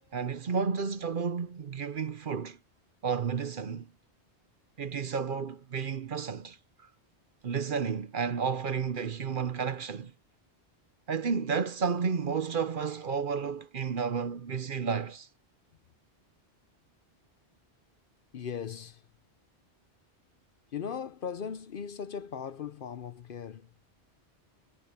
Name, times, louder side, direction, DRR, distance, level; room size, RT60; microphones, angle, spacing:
voice 1, 0.0-2.6 3.0-3.9 4.8-6.6 7.4-10.1 11.1-15.3, right 6 dB, 50° right, 1.0 m, -31 dB
voice 2, 18.3-19.0 20.7-23.7, left 7 dB, 55° left, 0.8 m, -38 dB
omnidirectional pair, 1.1 m